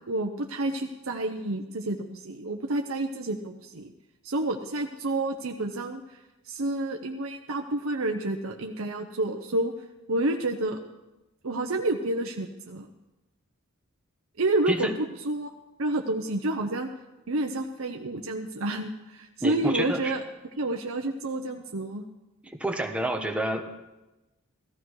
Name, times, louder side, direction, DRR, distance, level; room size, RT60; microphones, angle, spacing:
voice 1, 0.1-3.9 4.2-6.2 6.4-9.7 10.1-10.8 11.4-12.9 14.4-14.9 15.2-15.5 15.8-16.9 17.3-20.2 20.6-22.0, right 2 dB, 65° right, 3 dB, 0.9 m, -29 dB
voice 2, 14.7-15.0 19.4-20.1 22.4-23.6, right 1 dB, 5° right, 3 dB, 1.3 m, -29 dB
17.0 x 14.0 x 4.8 m, 1.0 s
head